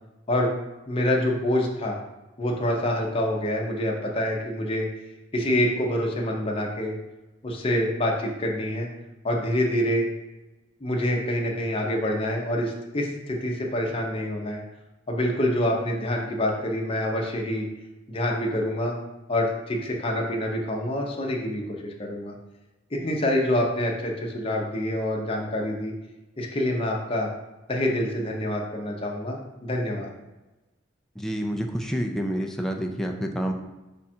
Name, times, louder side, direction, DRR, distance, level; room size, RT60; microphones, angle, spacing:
voice 1, 0.9-2.0 2.4-4.9 5.3-7.0 7.4-8.9 9.2-10.1 10.8-14.6 15.1-17.7 18.1-19.0 19.3-22.3 22.9-25.9 26.4-27.3 27.7-30.1, left 1 dB, 30° left, 0 dB, 0.7 m, -26 dB
voice 2, 31.2-33.5, equal, ahead, 2 dB, 0.4 m, -28 dB
5.2 x 2.4 x 4.3 m, 1.0 s
head